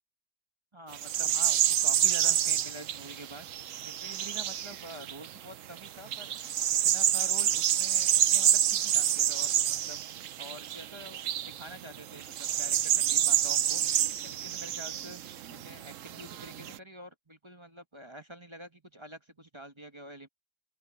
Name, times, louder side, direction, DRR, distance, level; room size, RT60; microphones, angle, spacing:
voice 1, 0.7-3.5 3.8-6.3 6.7-10.0 10.4-13.8 14.1-15.2 15.5-20.3, equal, 20° right, 1.3 m, -47 dB
sound 1, 0.9-5.4 5.8-16.8, right 11 dB, 65° right, 1.0 m, -28 dB
open air
omnidirectional pair, 1.6 m